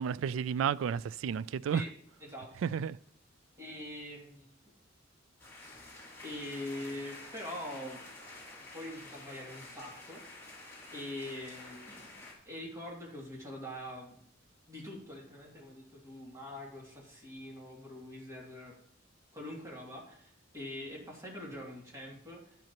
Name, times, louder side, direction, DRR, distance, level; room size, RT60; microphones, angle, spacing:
voice 1, 0.0-1.8 2.6-3.0, right 7 dB, 90° right, 0.3 m, -32 dB
voice 2, 2.2-2.7 3.6-4.5 6.2-8.0 8.7-10.2 10.9-14.2 14.7-18.8 19.3-22.6, left 1 dB, 15° right, 2.4 m, -44 dB
sound 1, 5.4-12.3, left 2 dB, 10° left, 2.7 m, -49 dB
10.5 x 10.5 x 2.9 m
head